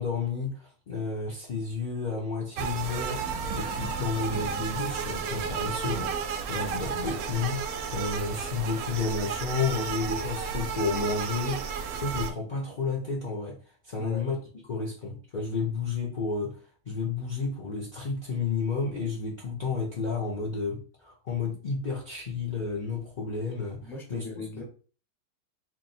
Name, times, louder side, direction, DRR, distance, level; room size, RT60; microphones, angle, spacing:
voice 1, 0.0-3.2 3.6-13.6 13.8-14.4 14.7-16.6 16.9-23.8 24.1-24.2, left 4 dB, 70° left, -2 dB, 0.4 m, -31 dB
sound 1, 2.6-12.3, right 6 dB, 70° right, 0.9 m, -32 dB
voice 2, 23.8-24.6, left 2 dB, ahead, 0 dB, 0.5 m, -39 dB
3.0 x 2.7 x 4.2 m, 0.40 s
omnidirectional pair, 1.9 m